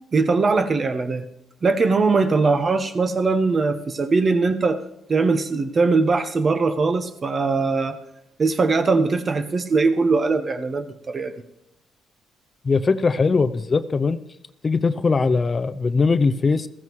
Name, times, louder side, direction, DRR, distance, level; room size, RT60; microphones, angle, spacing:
voice 1, 0.1-1.2 1.6-4.8 5.1-7.9 8.4-11.3, right 4 dB, 35° right, 9 dB, 1.0 m, -21 dB
voice 2, 12.6-14.2 14.6-16.7, left 4 dB, 35° left, 12 dB, 0.5 m, -20 dB
15.0 x 14.5 x 3.1 m, 0.82 s
cardioid pair, 90°, 0 cm